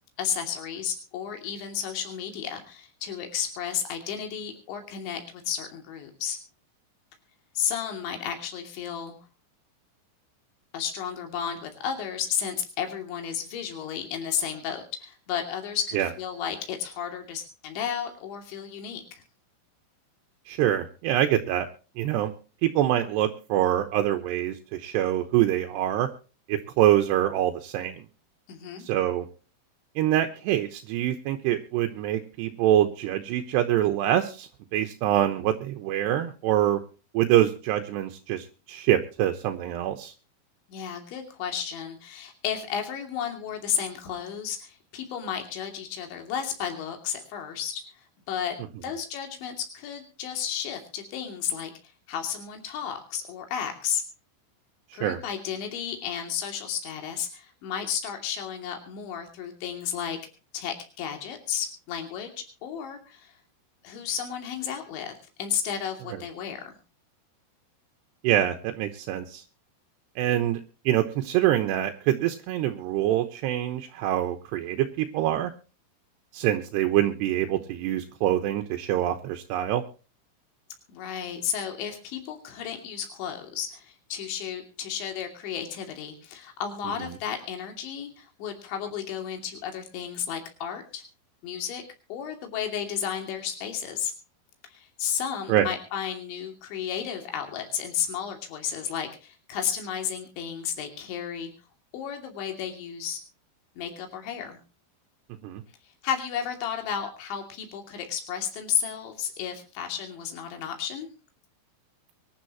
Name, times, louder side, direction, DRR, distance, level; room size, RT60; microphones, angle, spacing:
voice 1, 0.2-6.4 7.6-9.2 10.7-19.2 28.5-28.9 40.7-48.6 48.8-54.0 54.9-60.2 60.5-63.4 63.8-66.8 80.9-91.0 91.4-91.8 92.1-94.1 94.6-101.5 101.9-103.2 103.8-104.6 105.8-111.1, left 8 dB, 70° left, 4 dB, 5.0 m, -33 dB
voice 2, 20.5-21.7 22.0-22.3 22.6-26.1 26.5-28.0 28.8-29.3 30.0-36.8 37.1-40.1 54.9-55.2 68.2-69.4 70.2-70.6 70.9-75.5 76.3-79.8 95.5-95.7 105.4-105.6, right 12 dB, 75° right, 5 dB, 2.8 m, -25 dB
24.0 x 11.5 x 3.0 m, 0.36 s
omnidirectional pair, 5.6 m